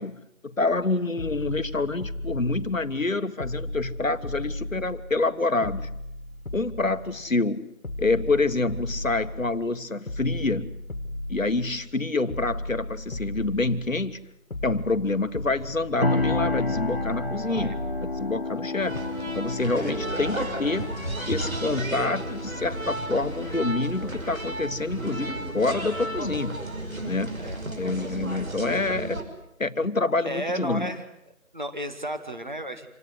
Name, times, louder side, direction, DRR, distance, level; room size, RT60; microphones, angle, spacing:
voice 1, 0.0-6.0 6.5-7.7 8.0-10.7 11.3-14.2 14.6-17.7 18.1-19.0 19.3-20.9 21.3-26.6 27.0-27.4 27.8-29.2 29.6-30.9, left 3 dB, 70° left, 11 dB, 1.5 m, -27 dB
sound 1, 0.7-0.9 1.2-3.1 3.4-5.3 5.6-7.5 7.8-9.8 10.1-11.9 12.3-14.2 14.5-18.6 18.9-19.0, left 1 dB, 85° left, 2.1 m, -35 dB
sound 2, 16.0-25.7, left 2 dB, 45° left, 1.2 m, -32 dB
sound 3, 18.8-29.2, right 1 dB, 75° right, 5.8 m, -33 dB
voice 2, 30.3-31.0 31.5-32.9, equal, 35° right, 8 dB, 1.9 m, -33 dB
26.5 x 18.0 x 9.6 m, 0.83 s
figure-of-eight pair, 175°, 41 cm